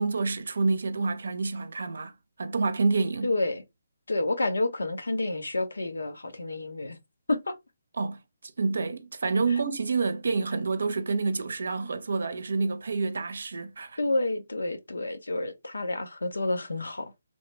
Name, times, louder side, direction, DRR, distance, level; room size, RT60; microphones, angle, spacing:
voice 1, 0.0-2.1 2.4-3.3 8.0-14.0, right 4 dB, 70° right, 0.6 m, -28 dB
voice 2, 3.2-3.6 4.1-7.0 7.3-7.5 14.0-17.1, left 2 dB, 90° left, 0.7 m, -29 dB
3.1 x 2.1 x 3.1 m
figure-of-eight pair, 150°, 0 cm